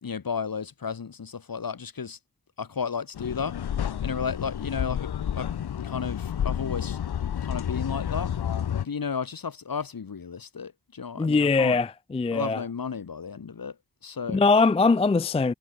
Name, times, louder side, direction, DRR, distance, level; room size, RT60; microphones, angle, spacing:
voice 1, 0.0-2.2 2.6-3.6 4.0-5.5 5.8-7.0 7.4-8.3 8.8-11.8 12.3-13.8 14.0-14.4, left 6 dB, 65° left, 4.0 m, -33 dB
sound 1, 3.2-8.9, left 9 dB, 85° left, 1.0 m, -30 dB
voice 2, 11.2-12.6 14.3-15.5, left 4 dB, 15° left, 0.4 m, -22 dB
wide cardioid pair, 120°, 37 cm